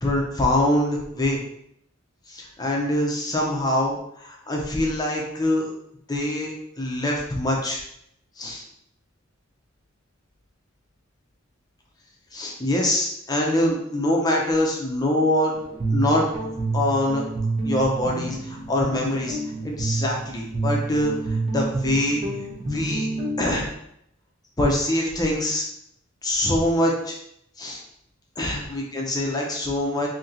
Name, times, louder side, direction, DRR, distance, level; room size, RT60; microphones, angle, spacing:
voice 1, 0.0-1.4 2.3-5.7 6.1-6.5 6.8-7.8 8.4-8.6 12.3-15.5 15.9-17.2 17.6-19.4 19.6-22.2 22.7-23.1 23.4-23.7 24.6-25.6 26.2-27.2 27.6-27.8 28.4-30.1, left 1 dB, 20° left, -1 dB, 0.6 m, -24 dB
Guitar, 15.5-23.5, right 2 dB, 30° right, 0.9 m, -28 dB
2.9 x 2.8 x 3.8 m, 0.74 s
head